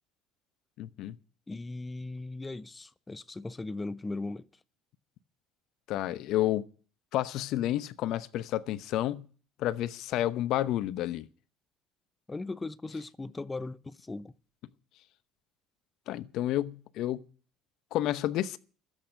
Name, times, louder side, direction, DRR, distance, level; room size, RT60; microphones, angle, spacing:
voice 1, 0.8-1.2 5.9-6.6 7.1-9.3 9.6-11.3 16.1-17.2 17.9-18.6, left 13 dB, 65° left, 0.9 m, -30 dB
voice 2, 1.5-4.4 12.3-14.3, left 2 dB, 20° left, 0.7 m, -38 dB
12.5 x 8.3 x 9.9 m
hypercardioid pair, 70°, 0 cm